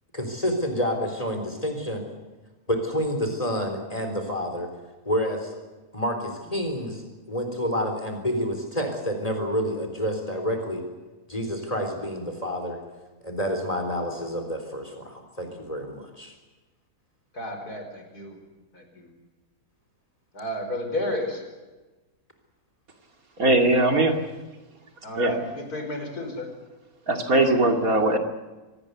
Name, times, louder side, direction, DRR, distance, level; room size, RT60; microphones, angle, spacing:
voice 1, 0.1-2.0 2.7-4.7 5.1-5.6 5.9-10.8 11.3-12.8 13.2-16.3, equal, 25° left, 5 dB, 3.9 m, -28 dB
voice 2, 17.3-18.4 18.7-19.1 20.3-21.4 25.0-26.5, left 1 dB, 85° left, 5 dB, 5.6 m, -32 dB
voice 3, 23.4-24.2 25.1-25.3 27.1-28.2, right 2 dB, 65° right, 4 dB, 3.0 m, -20 dB
25.5 x 19.5 x 8.2 m, 1.2 s
omnidirectional pair, 1.6 m